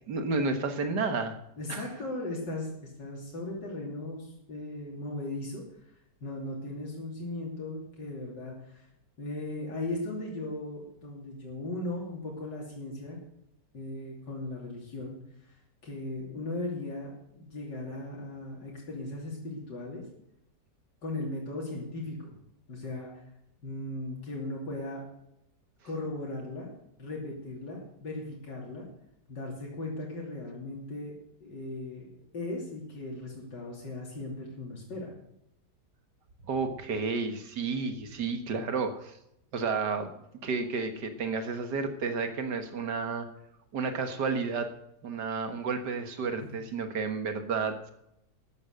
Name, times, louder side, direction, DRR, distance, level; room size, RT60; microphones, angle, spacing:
voice 1, 0.1-1.4 1.7-1.9 36.5-39.2 39.5-40.1 40.4-43.3 43.7-44.7 45.0-47.9, right 4 dB, 75° right, 7 dB, 2.1 m, -31 dB
voice 2, 1.6-5.6 6.2-8.9 9.2-13.2 13.7-20.1 21.0-22.3 22.7-23.1 23.6-25.0 25.8-26.7 27.0-28.9 29.3-31.1 31.4-35.1 46.4-46.5, left 2 dB, 85° left, -3 dB, 3.6 m, -37 dB
13.0 x 10.5 x 6.5 m, 0.81 s
omnidirectional pair, 1.8 m